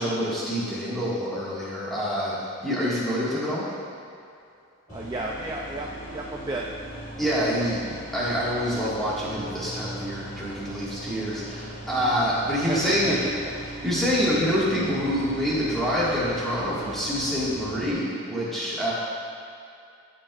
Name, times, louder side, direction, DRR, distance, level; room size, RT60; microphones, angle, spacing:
voice 1, 0.0-3.6 7.2-13.2 13.6-18.9, equal, ahead, -10 dB, 1.8 m, -26 dB
sound 1, 4.9-17.9, equal, 35° left, 1.9 m, -39 dB
voice 2, 4.9-6.6 12.7-13.1, right 2 dB, 20° right, -2 dB, 0.3 m, -32 dB
14.5 x 5.3 x 2.5 m, 2.5 s
head